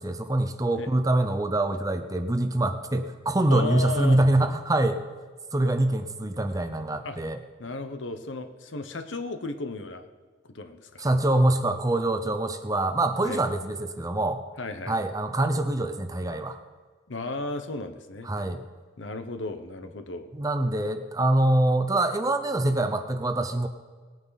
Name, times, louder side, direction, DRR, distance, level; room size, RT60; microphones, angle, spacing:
voice 1, 0.0-5.0 5.5-7.4 11.0-14.4 14.9-16.6 18.2-18.6 20.3-23.7, right 1 dB, 20° right, 8 dB, 0.7 m, -24 dB
voice 2, 3.5-4.2 7.0-7.2 7.6-10.1 10.5-11.1 13.2-13.4 14.6-15.0 17.1-18.3 19.0-20.3, left 2 dB, 80° left, 8 dB, 1.0 m, -34 dB
19.5 x 9.2 x 4.1 m, 1.4 s
head